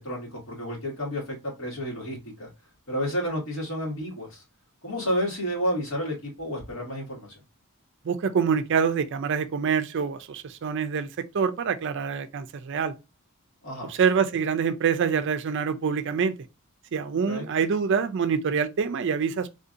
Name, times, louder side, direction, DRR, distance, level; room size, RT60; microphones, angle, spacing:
voice 1, 0.0-2.5 2.9-4.4 4.8-7.4 13.6-13.9 17.3-17.5, equal, 70° left, 2.0 m, -31 dB
voice 2, 8.0-12.9 13.8-16.3 16.9-19.5, right 6 dB, 55° right, 0.4 m, -26 dB
3.6 x 2.7 x 2.5 m
head